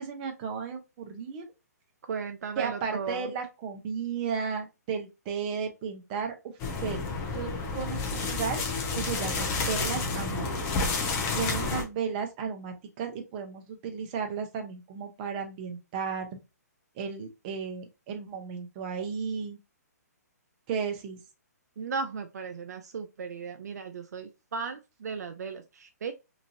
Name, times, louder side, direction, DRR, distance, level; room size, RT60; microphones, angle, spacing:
voice 1, 0.0-1.5 2.6-7.0 7.3-8.7 8.9-10.5 11.3-16.4 17.0-19.6 20.7-21.2, right 6 dB, 35° right, 0.7 m, -34 dB
voice 2, 2.1-3.3 21.8-26.1, right 5 dB, 70° right, 0.4 m, -36 dB
sound 1, 6.6-11.8, left 3 dB, 25° left, 0.7 m, -30 dB
2.9 x 2.5 x 2.6 m
hypercardioid pair, 140°, 9 cm